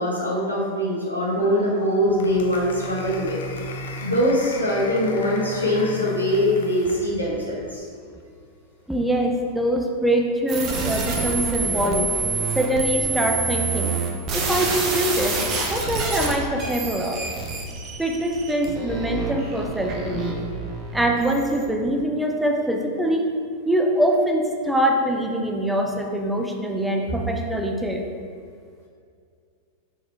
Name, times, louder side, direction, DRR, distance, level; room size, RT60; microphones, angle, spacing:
voice 1, 0.0-3.4 4.0-7.9, equal, 85° left, -5 dB, 1.5 m, -22 dB
Applause, 1.3-7.1, left 4 dB, 60° left, 0.6 m, -39 dB
Boom, 2.0-7.8, equal, 40° left, 1.1 m, -38 dB
voice 2, 8.9-12.1 12.5-14.0 14.3-15.4 15.7-17.2 18.0-20.4 20.9-23.3 23.7-28.1, right 1 dB, 5° right, 2 dB, 0.6 m, -23 dB
sound 1, 10.5-21.7, right 4 dB, 35° right, 1.0 m, -27 dB
6.0 x 4.2 x 4.5 m, 2.2 s
figure-of-eight pair, 90°, 0 cm